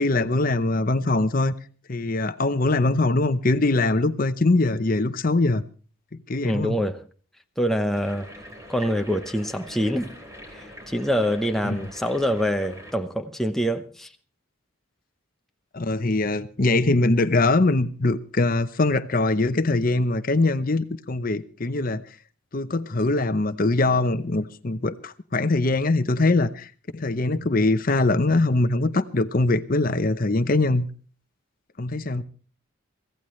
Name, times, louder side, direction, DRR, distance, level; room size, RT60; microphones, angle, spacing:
voice 1, 0.0-1.5 1.9-5.6 6.3-6.8 11.6-11.8 15.7-22.0 22.5-30.9 31.8-32.2, left 2 dB, 40° left, 0.7 m, -22 dB
voice 2, 6.4-7.0 7.6-8.3 8.7-10.2 10.5-14.1 32.2-32.3, equal, ahead, 0.8 m, -25 dB
sound 1, 7.9-12.9, equal, 15° right, 4.1 m, -43 dB
24.0 x 16.0 x 3.2 m
head